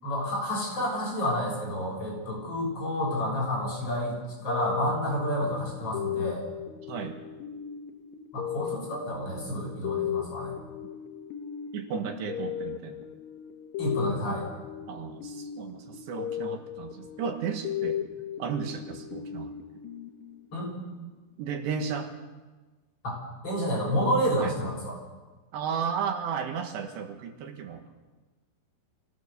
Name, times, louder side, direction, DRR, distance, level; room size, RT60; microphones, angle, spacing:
voice 1, 0.0-4.2 4.4-6.4 8.3-10.5 13.8-14.5 20.5-20.7 23.0-25.0, equal, 35° left, -2 dB, 7.3 m, -29 dB
sound 1, 4.5-20.8, left 10 dB, 65° left, 2.6 m, -37 dB
voice 2, 6.9-7.2 11.7-13.0 14.9-18.1 18.4-19.6 21.4-22.1 24.4-24.5 25.5-27.9, right 6 dB, 80° right, 5 dB, 3.6 m, -34 dB
25.0 x 17.0 x 6.8 m, 1.3 s
omnidirectional pair, 5.0 m